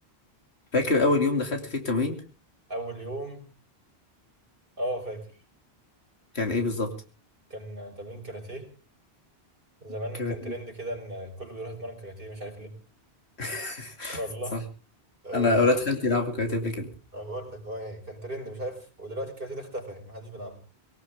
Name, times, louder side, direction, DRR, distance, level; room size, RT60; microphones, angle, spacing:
voice 1, 0.7-2.2 6.3-6.9 10.2-10.5 13.4-14.2 14.5-14.6 15.3-16.9, left 3 dB, 80° left, 5 dB, 2.9 m, -25 dB
voice 2, 2.7-3.5 4.8-5.4 7.5-8.7 9.8-12.7 14.1-14.6 15.2-15.8 17.1-20.6, right 1 dB, 55° right, 3 dB, 4.8 m, -36 dB
19.5 x 18.0 x 3.6 m, 0.37 s
omnidirectional pair, 1.1 m